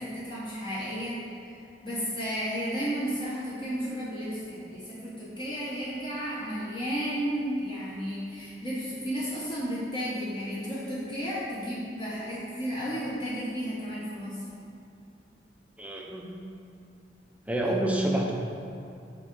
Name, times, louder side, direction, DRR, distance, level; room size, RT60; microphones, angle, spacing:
voice 1, 0.0-1.6 1.8-14.4 17.6-17.7, equal, 25° left, -8 dB, 0.9 m, -33 dB
voice 2, 15.8-16.3 17.5-18.3, right 1 dB, 10° right, -1 dB, 0.6 m, -27 dB
5.9 x 3.6 x 5.3 m, 2.6 s
head